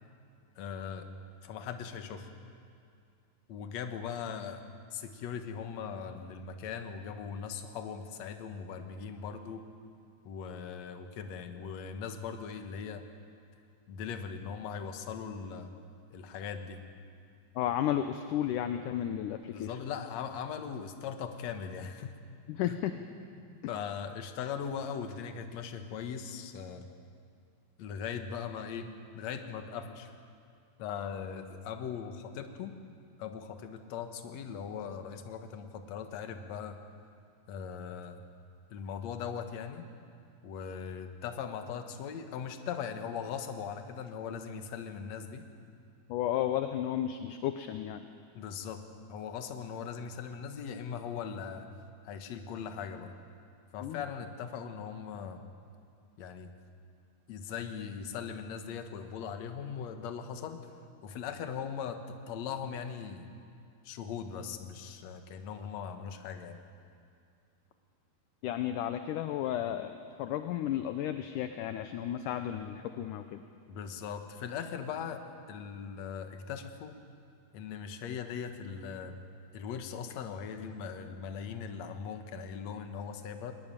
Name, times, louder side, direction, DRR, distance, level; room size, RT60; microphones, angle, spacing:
voice 1, 0.6-1.1 1.4-2.3 3.5-4.6 4.9-9.6 10.3-13.0 13.9-15.7 16.1-16.8 19.5-22.1 22.7-22.8 23.4-26.8 27.8-28.9 29.1-30.1 30.8-32.8 33.2-36.8 37.5-38.2 38.7-39.9 40.4-45.5 48.4-48.8 49.1-51.7 52.0-53.1 53.7-55.4 56.2-56.5 57.3-60.7 61.0-63.3 63.8-66.6 73.7-75.2 75.5-77.0 77.5-79.2 79.5-83.5, left 7 dB, 60° left, 7 dB, 2.2 m, -39 dB
voice 2, 17.6-19.8 22.5-22.9 46.1-48.0 53.8-54.0 68.4-73.5, left 11 dB, 75° left, 8 dB, 2.1 m, -33 dB
21.5 x 20.5 x 8.9 m, 2.3 s
omnidirectional pair, 4.2 m